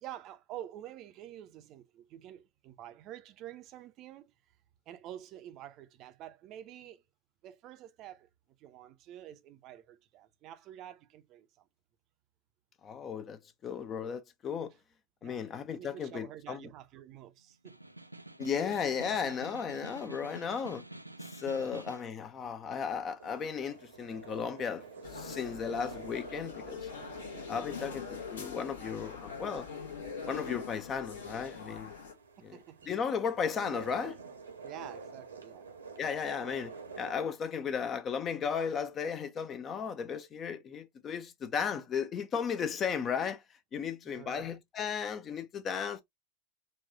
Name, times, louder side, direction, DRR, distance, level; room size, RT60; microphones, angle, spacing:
voice 1, 0.0-4.3 4.9-7.0 7.4-8.3 8.6-11.7 15.2-15.4 15.7-17.8 21.5-21.8 27.7-28.0 32.4-32.9 34.6-35.7 44.1-44.5, right 12 dB, 35° right, 0.5 m, -48 dB
voice 2, 12.8-14.7 15.2-16.7 18.4-20.8 21.2-24.8 25.1-26.9 27.5-29.7 30.3-31.9 32.4-32.6 32.8-34.2 36.0-43.4 43.7-46.0, left 6 dB, 25° left, 0.5 m, -35 dB
Snare drum, 17.5-22.2, right 2 dB, 85° right, 0.3 m, -48 dB
sound 1, 23.2-37.1, right 4 dB, 70° right, 0.8 m, -49 dB
sound 2, 25.0-32.1, left 5 dB, 65° left, 0.9 m, -43 dB
4.1 x 2.3 x 2.5 m
figure-of-eight pair, 90°, 0 cm